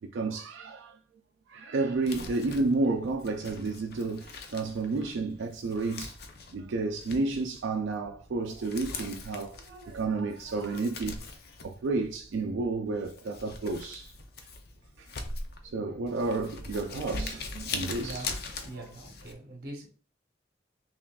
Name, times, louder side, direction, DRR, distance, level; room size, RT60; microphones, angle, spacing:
voice 1, 0.0-1.0 1.5-6.2 6.5-11.2 11.6-14.1 15.0-15.1 15.6-18.3, right 3 dB, 85° right, 0.4 m, -31 dB
Crumpling crinkling, 1.9-19.3, left 3 dB, 55° left, 0.5 m, -42 dB
voice 2, 17.7-18.3 18.6-19.9, right 2 dB, 55° right, 1.0 m, -43 dB
5.6 x 2.4 x 2.3 m
head